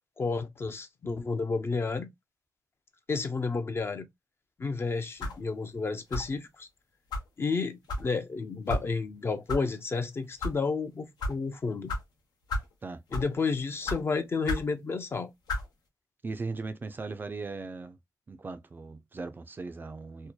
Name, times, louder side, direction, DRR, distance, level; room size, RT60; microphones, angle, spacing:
voice 1, 0.2-2.1 3.1-4.1 4.6-6.7 7.4-11.9 13.1-15.3, left 4 dB, 35° left, 0.4 m, -31 dB
sound 1, 5.2-5.4 6.1-6.4 7.1-7.3 7.9-8.1 8.7-8.9 9.5-9.6 10.2-10.5 11.2-11.4 11.9-12.0 12.5-12.7 13.1-13.4 13.9-14.0 14.5-14.7 15.5-15.7, left 1 dB, 85° left, 0.8 m, -32 dB
voice 2, 16.2-18.0 18.3-20.3, right 3 dB, 30° right, 0.3 m, -38 dB
2.7 x 2.1 x 2.2 m
cardioid pair, 100°, 7 cm